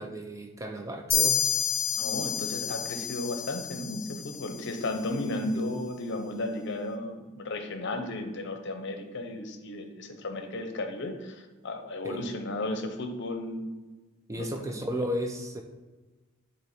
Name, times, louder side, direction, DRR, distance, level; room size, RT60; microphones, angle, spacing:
voice 1, 0.0-1.4 5.5-5.8 12.0-12.3 14.3-15.6, equal, 15° right, 4 dB, 0.4 m, -34 dB
sound 1, 1.1-4.7, left 8 dB, 25° left, 0.8 m, -29 dB
voice 2, 1.9-13.7 14.4-14.7, left 2 dB, 55° left, 6 dB, 0.7 m, -34 dB
6.7 x 2.9 x 4.9 m, 1.2 s
head